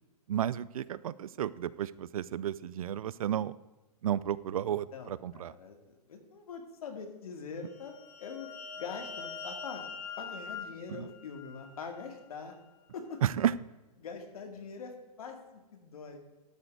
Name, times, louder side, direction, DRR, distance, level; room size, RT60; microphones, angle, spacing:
voice 1, 0.3-3.6 4.0-5.5 10.9-11.1 13.2-13.6, right 10 dB, 60° right, 19 dB, 0.4 m, -32 dB
voice 2, 4.6-8.5 8.8-9.8 10.2-12.5 12.9-13.2 14.0-16.2, left 5 dB, 65° left, 4 dB, 2.2 m, -44 dB
sound 1, 7.7-12.2, left 5 dB, 20° left, 0.7 m, -44 dB
12.5 x 6.4 x 4.6 m, 1.1 s
hypercardioid pair, 175°, 20 cm